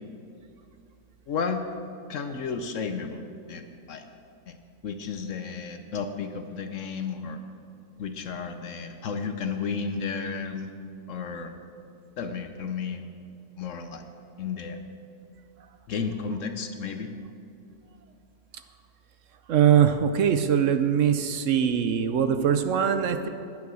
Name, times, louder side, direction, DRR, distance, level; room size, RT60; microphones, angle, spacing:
voice 1, 1.3-1.6 2.1-4.0 4.5-4.6 4.8-7.4 8.0-10.7 11.1-11.5 12.2-13.0 13.6-14.1 14.4-14.8 15.9-17.1, left 5 dB, 60° left, 7 dB, 0.9 m, -32 dB
voice 2, 19.5-23.3, right 8 dB, 65° right, 9 dB, 0.8 m, -22 dB
10.5 x 9.6 x 6.2 m, 2.6 s
omnidirectional pair, 1.7 m